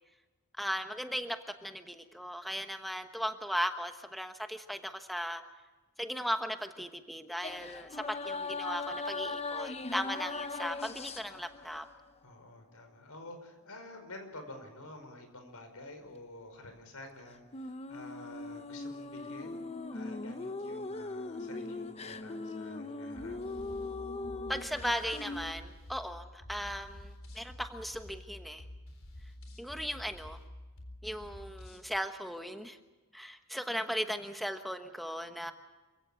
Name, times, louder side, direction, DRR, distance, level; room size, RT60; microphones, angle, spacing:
voice 1, 0.6-5.4 6.0-11.9 24.5-28.6 29.6-30.4 31.0-32.8 33.1-35.5, equal, ahead, 6 dB, 1.1 m, -37 dB
sound 1, 7.4-12.0 17.5-25.5, left 3 dB, 30° left, 0.7 m, -39 dB
voice 2, 12.2-19.6 19.9-23.4, left 2 dB, 85° left, 7 dB, 5.1 m, -49 dB
sound 2, 23.1-31.9, left 1 dB, 65° left, 3.9 m, -49 dB
27.0 x 16.5 x 7.0 m, 1.2 s
head